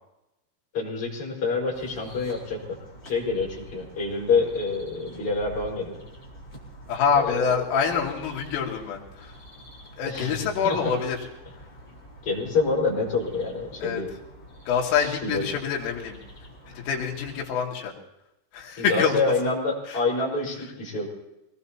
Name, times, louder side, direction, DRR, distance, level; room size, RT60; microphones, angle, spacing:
voice 1, 0.7-2.6 3.0-6.0 7.2-7.5 10.1-10.4 10.6-10.8 12.2-14.1 15.2-15.4 18.8-21.1, left 4 dB, 30° left, -3 dB, 5.6 m, -27 dB
sound 1, 1.7-17.4, equal, 10° left, 3.5 m, -47 dB
voice 2, 6.9-9.3 10.0-11.2 13.8-14.0 14.7-16.2 16.8-17.9 18.5-19.5 19.9-20.0, left 6 dB, 80° left, -1 dB, 4.8 m, -26 dB
25.0 x 20.0 x 2.9 m, 0.91 s
omnidirectional pair, 5.7 m